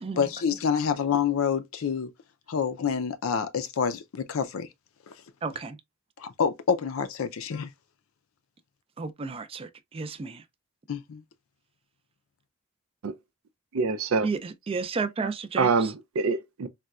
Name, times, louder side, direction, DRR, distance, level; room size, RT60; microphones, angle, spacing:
voice 1, 0.1-2.1 2.5-4.7 6.2-7.7 10.9-11.2, left 7 dB, 75° left, 0.5 m, -27 dB
voice 2, 5.4-5.8 9.0-10.4 14.2-15.9, right 4 dB, 25° right, 0.4 m, -32 dB
voice 3, 13.7-14.3 15.6-16.7, right 4 dB, 85° right, 0.5 m, -25 dB
4.1 x 2.2 x 2.3 m
head